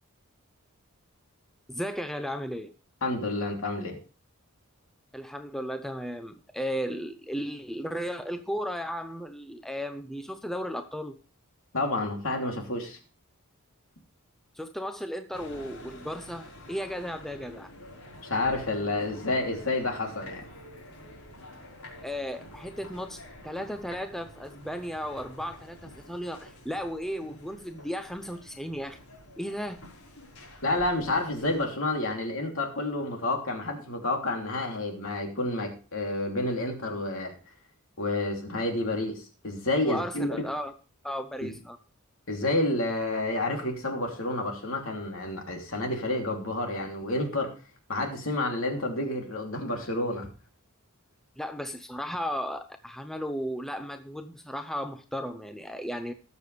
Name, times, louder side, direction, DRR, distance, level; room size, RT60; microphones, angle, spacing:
voice 1, 1.7-2.7 5.1-11.2 14.5-17.7 22.0-29.0 29.4-29.8 39.8-40.7 41.0-41.8 51.4-56.1, equal, ahead, 8 dB, 0.6 m, -35 dB
voice 2, 3.0-4.0 11.7-13.0 18.2-20.4 30.6-37.3 38.0-40.3 41.4-41.5 42.3-47.5 47.9-50.3, left 2 dB, 65° left, 2 dB, 3.0 m, -29 dB
sound 1, 15.3-31.7, left 1 dB, 80° left, 4.6 m, -48 dB
19.5 x 6.9 x 3.3 m, 0.36 s
head